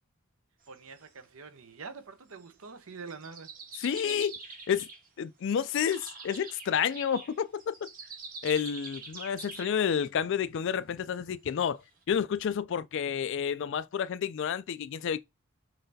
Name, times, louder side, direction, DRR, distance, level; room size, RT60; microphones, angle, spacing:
sound 1, 0.6-1.2 2.3-2.5 3.1-5.1 5.5-9.8 11.5-11.6 12.0-12.1, right 3 dB, 40° right, 1.3 m, -45 dB
voice 1, 0.7-3.5, right 5 dB, 70° right, 0.8 m, -45 dB
voice 2, 3.8-4.4 4.7-4.9 5.2-7.9 8.4-11.8 12.1-15.2, left 7 dB, 55° left, 0.3 m, -30 dB
5.5 x 3.2 x 2.7 m
head